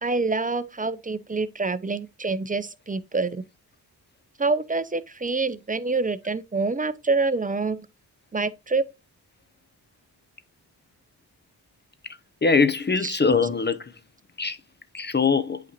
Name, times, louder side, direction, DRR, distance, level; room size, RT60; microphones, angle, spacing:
voice 1, 0.0-3.4 4.4-7.9 8.3-8.8 13.0-13.2, right 3 dB, 20° right, 0.6 m, -26 dB
voice 2, 12.4-13.8 14.4-14.6 14.9-15.6, left 4 dB, 25° left, 0.6 m, -22 dB
8.2 x 5.2 x 2.9 m
supercardioid pair, 40°, 46 cm